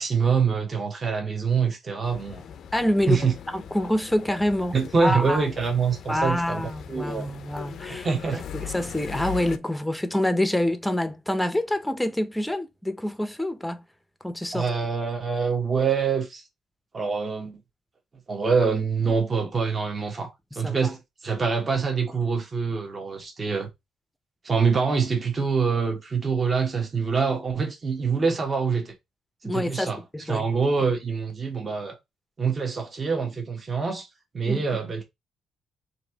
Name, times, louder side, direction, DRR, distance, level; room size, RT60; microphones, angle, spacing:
voice 1, 0.0-2.4 3.1-3.3 4.7-7.3 8.0-8.4 14.5-16.4 16.9-17.6 18.3-23.7 24.4-28.9 29.4-30.0 30.3-32.0 32.4-34.1 34.3-35.0, right 5 dB, 35° right, 1.1 m, -25 dB
sound 1, 2.0-9.6, left 8 dB, 65° left, 0.4 m, -40 dB
voice 2, 2.7-3.2 3.5-4.8 5.0-5.4 6.1-8.1 8.3-13.8 14.2-14.7 20.6-20.9 29.4-30.5 34.5-34.6, left 1 dB, 5° left, 0.6 m, -26 dB
3.1 x 2.7 x 4.4 m
cardioid pair, 90°, 0 cm